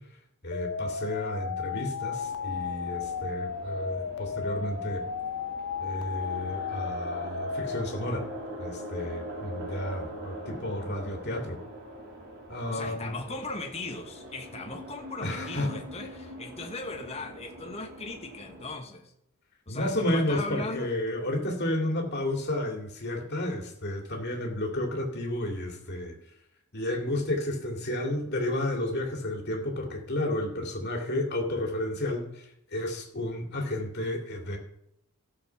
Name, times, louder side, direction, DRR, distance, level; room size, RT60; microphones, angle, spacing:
voice 1, 0.4-5.1 5.8-8.3 8.6-11.6 12.5-13.2 15.2-15.7 19.7-26.1 26.7-32.4 32.7-34.6, left 1 dB, 50° left, 2 dB, 2.4 m, -31 dB
sound 1, 0.5-7.9, left 6 dB, 80° left, 0.7 m, -34 dB
sound 2, 2.1-18.8, right 1 dB, 45° right, 3.0 m, -43 dB
voice 2, 12.7-19.1 19.7-20.9, left 3 dB, 30° left, 3 dB, 1.2 m, -38 dB
14.0 x 6.8 x 5.8 m, 0.76 s
head